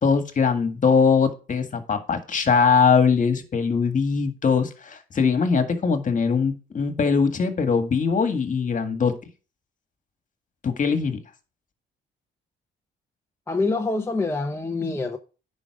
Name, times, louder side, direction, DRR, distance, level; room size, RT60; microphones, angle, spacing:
voice 1, 0.0-9.1 10.6-11.2, left 5 dB, 40° left, 1.8 m, -21 dB
voice 2, 13.5-15.2, left 3 dB, 15° left, 0.9 m, -25 dB
9.9 x 5.4 x 4.9 m
cardioid pair, 90°, 20 cm